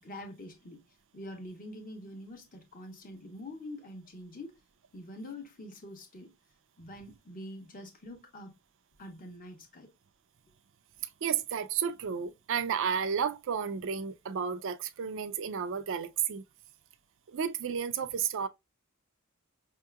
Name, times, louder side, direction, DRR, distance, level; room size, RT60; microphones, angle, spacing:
voice 1, 0.0-0.8 1.1-4.6 4.9-6.3 6.8-8.5 9.0-9.9, left 1 dB, 40° left, 1.0 m, -45 dB
voice 2, 11.2-16.4 17.3-18.5, right 7 dB, 60° right, 0.4 m, -32 dB
5.6 x 2.8 x 2.2 m
head